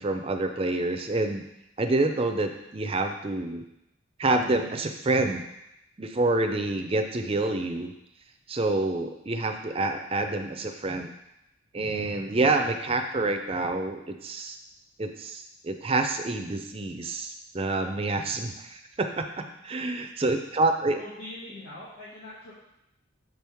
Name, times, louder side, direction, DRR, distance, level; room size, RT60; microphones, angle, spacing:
voice 1, 0.0-1.4 1.8-3.6 4.2-5.4 6.0-7.9 8.5-11.1 11.7-14.6 15.0-19.3 19.6-21.0, right 2 dB, 30° right, 6 dB, 0.5 m, -27 dB
voice 2, 20.9-22.5, left 1 dB, 85° left, -10 dB, 1.9 m, -42 dB
7.1 x 4.6 x 3.5 m, 0.85 s
head